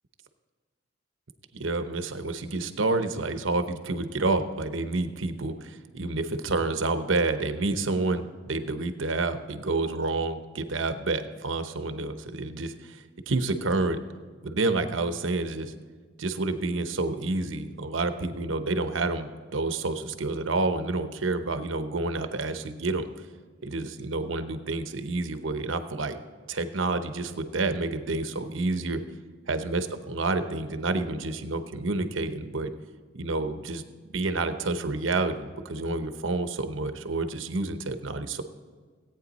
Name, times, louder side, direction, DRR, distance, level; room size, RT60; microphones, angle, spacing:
voice 1, 1.5-14.0 14.4-15.7 16.2-23.1 23.6-26.2 26.5-29.0 29.5-32.7 33.1-33.8 34.1-38.4, right 3 dB, 85° right, 9 dB, 0.9 m, -29 dB
17.0 x 9.0 x 4.1 m, 1.5 s
head